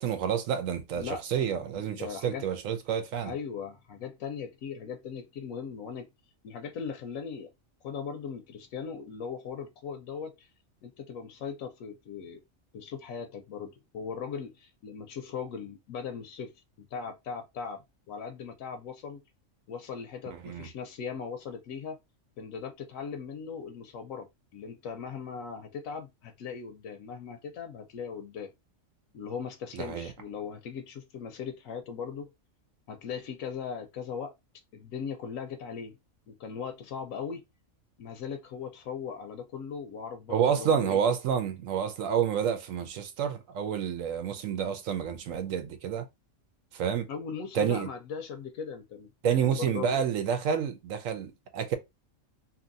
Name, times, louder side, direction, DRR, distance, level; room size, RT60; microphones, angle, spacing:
voice 1, 0.0-3.3 20.3-20.7 29.7-30.1 40.3-46.0 46.7-47.1 47.5-47.9 49.2-51.8, right 8 dB, 80° right, 1.1 m, -29 dB
voice 2, 0.9-2.5 3.2-6.1 6.4-7.5 7.8-10.5 10.8-12.4 12.7-16.5 16.8-19.2 19.7-22.0 22.4-28.5 29.1-32.3 32.9-34.3 34.7-36.0 36.3-37.4 38.0-41.0 47.1-50.0, left 6 dB, 85° left, 1.0 m, -39 dB
2.8 x 2.6 x 2.5 m
omnidirectional pair, 1.4 m